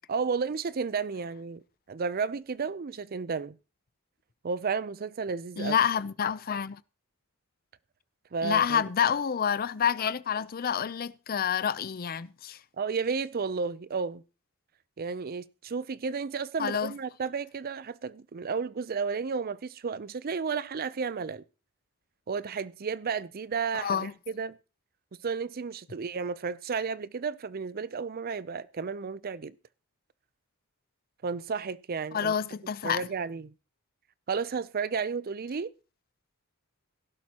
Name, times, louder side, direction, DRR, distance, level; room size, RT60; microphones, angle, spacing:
voice 1, 0.1-1.6 1.9-3.6 4.4-5.8 8.3-8.8 12.8-14.2 15.0-21.4 22.3-24.6 25.2-29.5 31.2-32.3 32.8-33.5 34.3-35.7, right 5 dB, 45° right, 0.5 m, -32 dB
voice 2, 5.6-6.8 8.4-12.6 16.6-16.9 23.8-24.1 32.1-33.1, left 7 dB, 45° left, 0.5 m, -28 dB
17.0 x 11.5 x 2.9 m
head